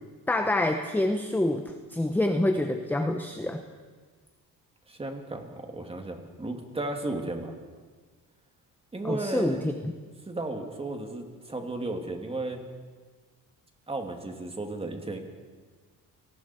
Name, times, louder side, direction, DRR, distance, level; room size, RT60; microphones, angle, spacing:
voice 1, 0.3-3.6 9.0-9.7, left 1 dB, 5° left, 6 dB, 1.0 m, -27 dB
voice 2, 4.9-7.5 8.9-9.6 10.3-12.6 13.9-15.2, right 2 dB, 15° right, 3 dB, 2.7 m, -34 dB
29.5 x 19.5 x 4.6 m, 1.5 s
cardioid pair, 120°, 35 cm